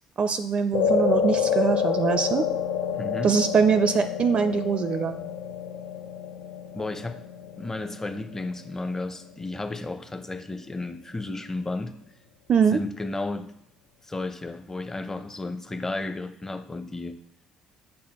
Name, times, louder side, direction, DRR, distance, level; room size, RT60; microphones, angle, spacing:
voice 1, 0.2-2.4 3.2-5.2 12.5-12.8, right 6 dB, 50° right, 10 dB, 0.4 m, -23 dB
sound 1, 0.7-9.2, left 7 dB, 85° left, 0.5 m, -28 dB
voice 2, 2.9-3.3 6.7-7.2 7.6-11.9 12.7-13.5 14.0-17.2, left 2 dB, 20° left, 10 dB, 0.7 m, -33 dB
7.4 x 6.1 x 3.0 m, 0.70 s
hypercardioid pair, 60°, 2 cm